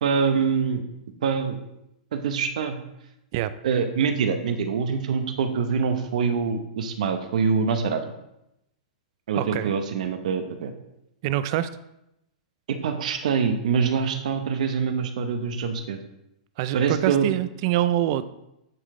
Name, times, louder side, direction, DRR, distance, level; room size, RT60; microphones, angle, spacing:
voice 1, 0.0-0.8 1.2-1.6 2.1-2.8 3.6-8.0 9.3-10.7 12.7-16.0 16.7-17.3, right 6 dB, 70° right, 7 dB, 0.8 m, -24 dB
voice 2, 9.4-9.7 11.2-11.7 16.6-18.2, right 13 dB, 40° right, 14 dB, 0.3 m, -25 dB
9.3 x 3.9 x 3.7 m, 0.85 s
hypercardioid pair, 160°, 4 cm